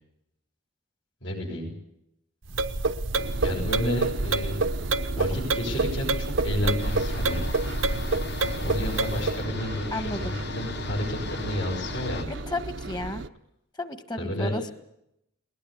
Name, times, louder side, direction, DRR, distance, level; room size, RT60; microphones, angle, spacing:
voice 1, 1.2-1.7 3.4-4.6 4.8-7.4 8.5-12.3 14.2-14.5, left 1 dB, 70° left, -4 dB, 7.6 m, -31 dB
sound 1, 2.5-9.4, right 3 dB, 85° right, 1.0 m, -27 dB
Engine, 3.1-13.3, right 3 dB, 65° right, 0.8 m, -37 dB
sound 2, 6.8-12.2, left 5 dB, 55° left, 0.9 m, -37 dB
voice 2, 9.9-10.3 12.3-13.2 13.8-14.7, left 2 dB, 20° left, 10 dB, 1.5 m, -33 dB
20.5 x 19.5 x 8.3 m, 0.81 s
head